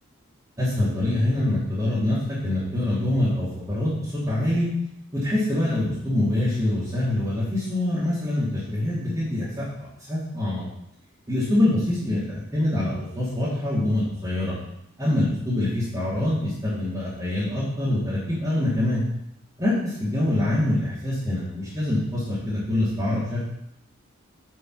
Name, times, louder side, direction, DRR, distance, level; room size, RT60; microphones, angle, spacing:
voice 1, 0.6-4.7 5.1-9.7 10.1-10.6 11.3-14.5 15.0-19.0 19.6-23.4, left 1 dB, 15° right, -11 dB, 2.8 m, -25 dB
7.6 x 5.9 x 6.2 m, 0.77 s
head